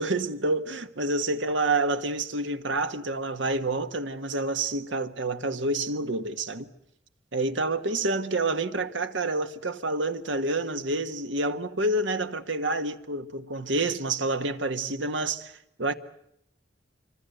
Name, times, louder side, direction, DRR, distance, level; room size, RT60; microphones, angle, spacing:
voice 1, 0.0-6.7 7.3-15.9, right 2 dB, 75° right, 1.5 m, -28 dB
25.5 x 25.0 x 8.0 m
head